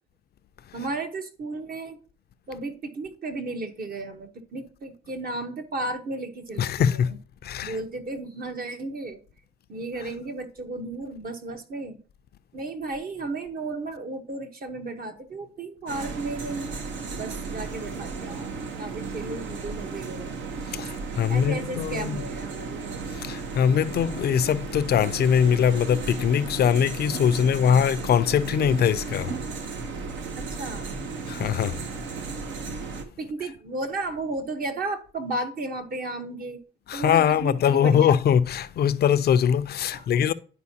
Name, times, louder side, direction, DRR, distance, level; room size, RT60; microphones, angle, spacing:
voice 1, 0.7-2.0 2.5-7.2 7.6-9.2 9.7-12.0 12.5-16.7 17.1-20.3 21.3-23.0 30.4-30.9 33.2-36.6 36.9-38.2 39.9-40.1, right 2 dB, 50° right, 1.1 m, -34 dB
voice 2, 6.6-7.8 20.7-22.2 23.1-29.4 30.9-31.8 36.9-40.3, left 8 dB, 55° left, 0.5 m, -22 dB
sound 1, 15.9-33.0, right 4 dB, 75° right, 0.9 m, -34 dB
10.5 x 4.5 x 2.8 m
cardioid pair, 90°, 20 cm